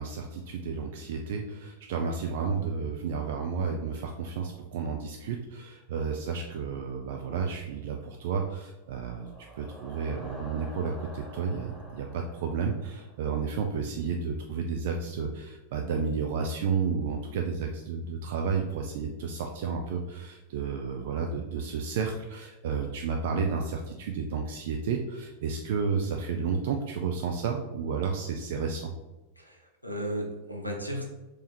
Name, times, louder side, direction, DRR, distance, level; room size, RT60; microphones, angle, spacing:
voice 1, 0.0-9.3 9.6-28.9, right 5 dB, 55° right, 3 dB, 0.4 m, -31 dB
sound 1, 8.8-13.7, equal, ahead, 1.0 m, -48 dB
voice 2, 29.4-31.0, equal, 90° left, 0 dB, 0.8 m, -35 dB
3.4 x 3.2 x 4.2 m, 1.1 s
figure-of-eight pair, 90°, 0 cm